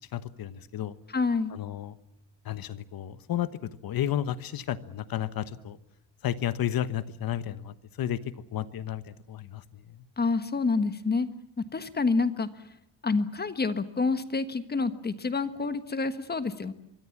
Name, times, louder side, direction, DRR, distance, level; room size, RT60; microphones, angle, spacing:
voice 1, 0.1-0.9 1.5-2.0 2.4-5.8 6.2-8.2 8.5-10.0, left 11 dB, 50° left, 14 dB, 1.2 m, -32 dB
voice 2, 1.1-1.5 10.2-11.3 11.7-12.5 13.0-16.7, left 4 dB, 20° left, 11 dB, 1.4 m, -28 dB
25.0 x 24.0 x 7.3 m, 0.77 s
cardioid pair, 160°, 44 cm